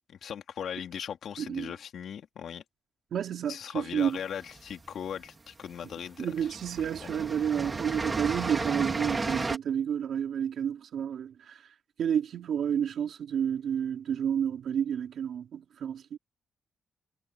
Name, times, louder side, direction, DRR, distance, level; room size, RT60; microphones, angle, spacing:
voice 1, 0.1-2.6 3.5-6.3 7.0-7.2, left 8 dB, 70° left, 3.1 m, -39 dB
voice 2, 1.4-1.7 3.1-4.2 6.2-11.6 12.0-16.2, right 8 dB, 70° right, 3.9 m, -30 dB
sound 1, 4.2-5.0 5.9-6.1 6.4-9.6, right 3 dB, 25° right, 3.4 m, -33 dB
cardioid pair, 125°, 0 cm